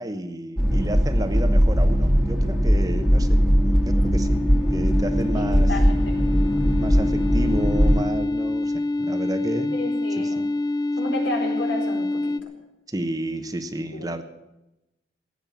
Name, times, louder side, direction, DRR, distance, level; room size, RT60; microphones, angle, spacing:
voice 1, 0.0-4.4 4.7-5.7 6.8-9.8 10.2-10.3 12.9-14.2, right 1 dB, 20° right, 9 dB, 1.0 m, -31 dB
sound 1, 0.6-8.0, equal, ahead, 1.7 m, -20 dB
sound 2, 2.2-12.4, left 2 dB, 20° left, 0.5 m, -27 dB
voice 2, 5.3-5.8 9.7-10.4 11.0-12.3 13.9-14.1, left 1 dB, 80° left, 1 dB, 4.4 m, -32 dB
16.5 x 8.8 x 8.5 m, 0.92 s
head